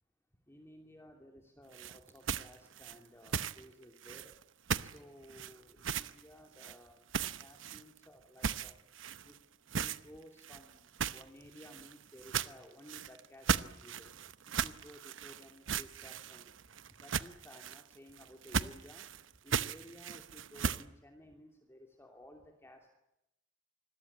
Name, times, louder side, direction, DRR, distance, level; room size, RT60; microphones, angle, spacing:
voice 1, 0.5-4.3 4.8-7.0 7.4-8.8 9.2-9.3 9.7-14.1 14.6-16.5 17.0-19.0 19.4-22.9, equal, 15° left, 3 dB, 2.8 m, -56 dB
sound 1, 1.7-3.6 4.0-4.4 4.7-5.0 5.3-6.2 6.6-6.8 7.1-8.0 8.4-9.4 9.7-10.0 10.4-20.8, right 6 dB, 70° right, 0.9 m, -37 dB
27.0 x 21.5 x 8.6 m, 0.87 s
head